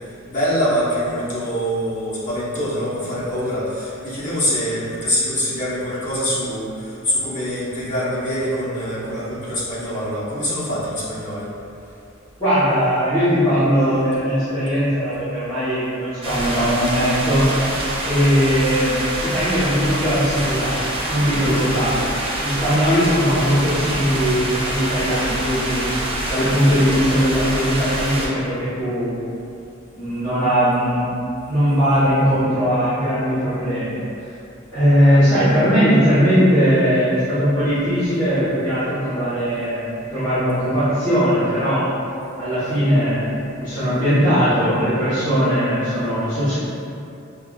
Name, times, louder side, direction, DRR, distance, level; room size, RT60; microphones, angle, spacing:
voice 1, 0.3-11.5, equal, 40° left, -10 dB, 1.1 m, -24 dB
voice 2, 12.4-17.5 18.1-22.0 22.4-25.8 26.3-29.1 30.0-31.0 31.5-34.0 34.7-41.9 42.4-43.3 43.6-46.6, equal, 15° left, -17 dB, 1.1 m, -19 dB
sound 1, 16.2-28.3, right 1 dB, 30° right, 0.5 m, -26 dB
5.6 x 2.3 x 2.4 m, 2.7 s
head